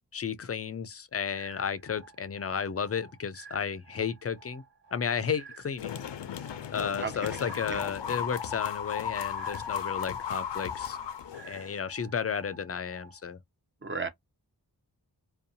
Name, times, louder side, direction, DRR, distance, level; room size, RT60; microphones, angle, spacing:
voice 1, 0.1-4.6 4.9-6.0 6.7-11.0 11.4-13.4, left 7 dB, 35° left, 0.4 m, -33 dB
sound 1, 1.3-13.3, right 5 dB, 75° right, 1.6 m, -53 dB
sound 2, 5.8-11.8, left 8 dB, 90° left, 0.5 m, -35 dB
voice 2, 7.0-7.4 7.7-7.9 13.8-14.1, right 4 dB, 30° right, 0.6 m, -35 dB
2.6 x 2.2 x 2.6 m
wide cardioid pair, 70°, 42 cm